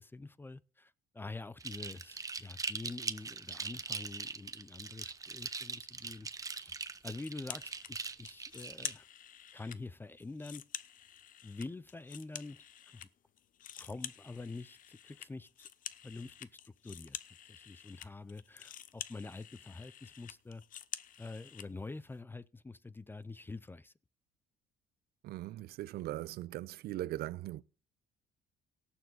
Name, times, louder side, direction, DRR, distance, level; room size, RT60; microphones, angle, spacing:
voice 1, 0.0-6.8 7.0-9.1 9.5-10.6 11.4-13.1 13.8-15.7 16.0-17.2 17.5-20.6 21.2-23.9, left 3 dB, 10° left, 0.5 m, -46 dB
sound 1, 1.6-8.9, right 4 dB, 20° right, 0.7 m, -41 dB
sound 2, 7.2-7.9 8.3-9.8 10.2-13.1 13.4-21.7, left 10 dB, 55° left, 0.7 m, -48 dB
voice 2, 25.2-27.6, right 15 dB, 70° right, 0.6 m, -40 dB
18.0 x 7.1 x 4.0 m
cardioid pair, 110°, 17 cm